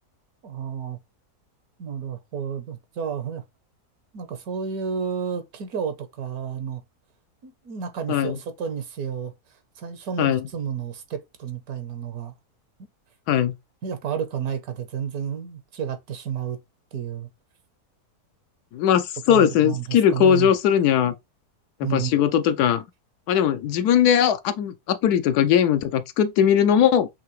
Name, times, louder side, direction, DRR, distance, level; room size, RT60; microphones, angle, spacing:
voice 1, 0.4-1.0 1.8-3.4 4.1-6.8 7.4-9.3 9.8-12.3 13.8-16.6 16.9-17.3 19.3-20.5 21.8-22.2, right 7 dB, 75° right, 1.4 m, -31 dB
voice 2, 8.1-8.4 10.2-10.5 13.3-13.5 18.7-21.2 21.8-22.8 23.3-27.1, left 9 dB, 90° left, 1.1 m, -20 dB
5.9 x 2.7 x 3.0 m
omnidirectional pair, 1.6 m